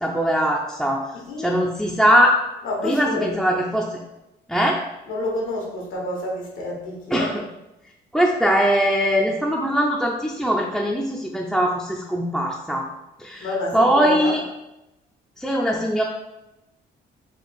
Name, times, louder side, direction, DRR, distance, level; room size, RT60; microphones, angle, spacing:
voice 1, 0.0-1.0 1.4-2.4 2.8-4.0 4.5-4.8 7.1-7.4 8.1-12.9 13.2-13.5 13.7-14.4 15.4-16.0, equal, ahead, -2 dB, 0.4 m, -21 dB
voice 2, 1.1-1.5 2.6-3.4 5.1-7.3 13.4-14.4, left 2 dB, 85° left, -1 dB, 1.2 m, -28 dB
4.4 x 2.3 x 4.0 m, 0.94 s
cardioid pair, 90°, 20 cm